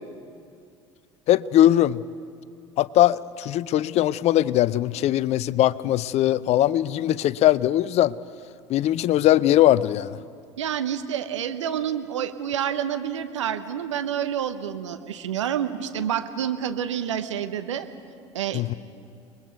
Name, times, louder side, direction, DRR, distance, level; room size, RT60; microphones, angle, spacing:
voice 1, 1.3-2.0 2.8-8.1 8.7-10.2 18.5-18.7, left 13 dB, 45° left, 19 dB, 0.6 m, -20 dB
voice 2, 10.6-17.9 18.3-18.7, right 9 dB, 75° right, 10 dB, 1.0 m, -28 dB
30.0 x 21.0 x 4.7 m, 2.3 s
figure-of-eight pair, 65°, 16 cm